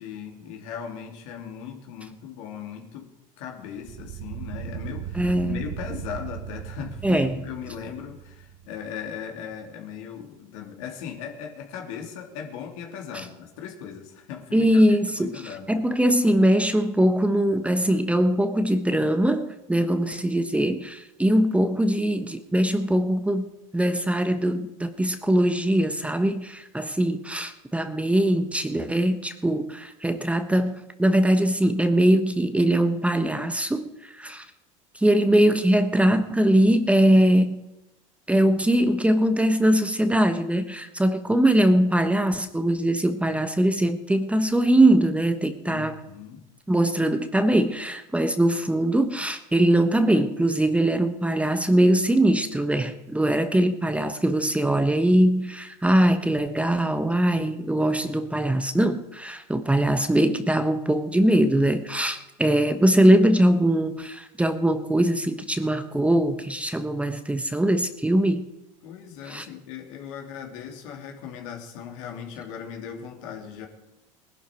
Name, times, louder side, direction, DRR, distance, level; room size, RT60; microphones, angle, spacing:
voice 1, 0.0-14.8 15.1-15.7 45.7-46.4 68.8-73.7, left 8 dB, 75° left, 2 dB, 2.9 m, -38 dB
sound 1, 3.8-9.0, right 11 dB, 60° right, 0.9 m, -38 dB
voice 2, 5.2-5.6 7.0-7.4 13.1-13.3 14.5-15.4 15.7-34.5 34.9-37.6 38.3-46.0 46.7-68.5 69.3-69.5, right 1 dB, 5° right, 9 dB, 1.1 m, -22 dB
19.5 x 11.5 x 4.6 m, 0.93 s
hypercardioid pair, 90°, 17 cm